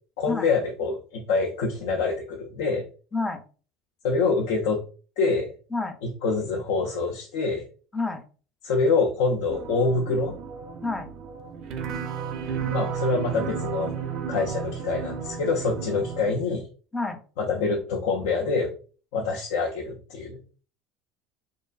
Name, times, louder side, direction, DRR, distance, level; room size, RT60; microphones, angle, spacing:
voice 1, 0.2-2.9 4.0-4.8 5.2-5.5 6.0-7.7 8.6-10.3 12.7-13.9 14.3-16.7 17.4-18.8 19.1-20.4, left 4 dB, 85° left, 1 dB, 0.4 m, -25 dB
voice 2, 3.1-3.4 5.7-6.0 7.9-8.2 10.8-11.1 16.9-17.2, left 3 dB, 10° left, 6 dB, 0.4 m, -28 dB
sound 1, 9.5-16.3, right 7 dB, 60° right, 0.4 m, -33 dB
2.4 x 2.3 x 2.3 m, 0.38 s
supercardioid pair, 120°, 0 cm